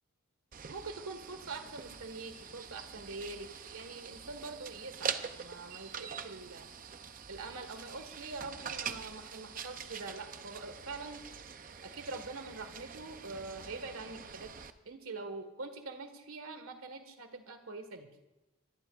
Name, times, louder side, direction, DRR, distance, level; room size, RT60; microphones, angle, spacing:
sound 1, 0.5-14.7, right 7 dB, 40° right, 0.6 m, -44 dB
voice 1, 0.7-6.7 7.3-11.2 11.8-14.5 14.8-18.1, right 3 dB, 80° right, 7 dB, 1.7 m, -44 dB
23.5 x 17.5 x 2.5 m, 0.98 s
head